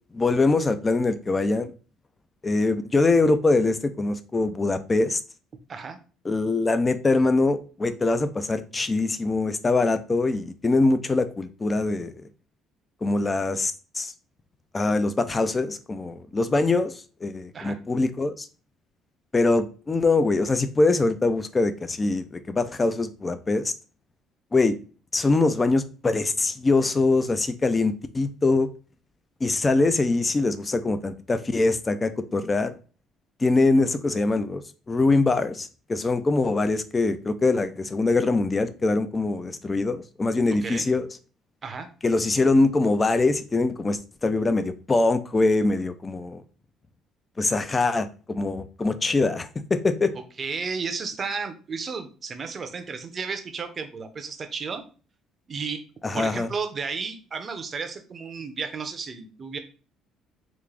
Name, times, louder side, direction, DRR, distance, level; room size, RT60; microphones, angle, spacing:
voice 1, 0.1-1.7 2.4-5.2 6.2-12.1 13.0-14.1 14.7-16.9 17.2-18.5 19.3-23.7 24.5-24.8 25.1-28.7 29.4-32.7 33.4-34.6 34.9-41.1 42.0-46.4 47.4-50.1 56.0-56.5, left 3 dB, 20° left, 0.3 m, -23 dB
voice 2, 50.4-54.8 55.5-55.8 56.1-59.6, right 5 dB, 35° right, 0.6 m, -33 dB
3.6 x 2.4 x 3.2 m
cardioid pair, 130°, 0 cm